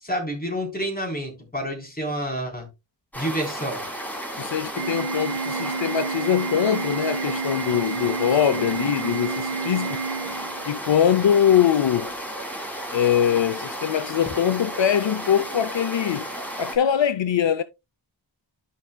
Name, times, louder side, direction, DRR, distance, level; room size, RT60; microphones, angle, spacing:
voice 1, 0.0-2.7 3.2-3.8, equal, 20° left, 3.8 m, -29 dB
sound 1, 3.1-16.8, right 1 dB, 5° left, 3.0 m, -33 dB
voice 2, 4.4-10.0 10.6-12.1 12.9-16.3 16.6-17.6, left 9 dB, 70° left, 0.6 m, -22 dB
Organ, 4.8-10.8, right 5 dB, 60° right, 1.3 m, -30 dB
13.0 x 5.5 x 2.2 m
wide cardioid pair, 65°, 46 cm